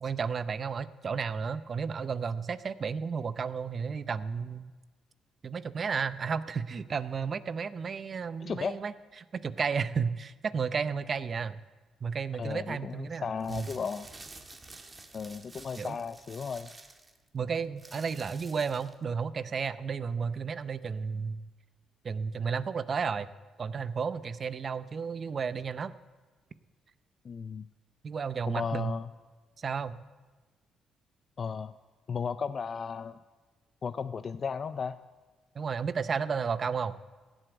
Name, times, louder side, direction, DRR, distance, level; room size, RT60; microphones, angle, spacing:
voice 1, 0.0-4.7 5.4-8.9 9.3-11.6 12.0-13.7 15.8-16.0 17.3-21.4 22.0-23.3 23.6-25.9 28.0-28.9 29.6-30.0 35.5-37.0, right 6 dB, 45° right, 14 dB, 0.6 m, -32 dB
voice 2, 8.4-8.7 12.4-14.1 15.1-16.7 27.2-27.7 28.5-29.1 31.4-31.7 32.1-33.2 33.8-35.0, left 6 dB, 45° left, 11 dB, 0.4 m, -35 dB
sound 1, 13.4-19.0, right 3 dB, 25° right, 1.5 m, -50 dB
16.0 x 7.9 x 7.9 m, 1.3 s
cardioid pair, 90°, 0 cm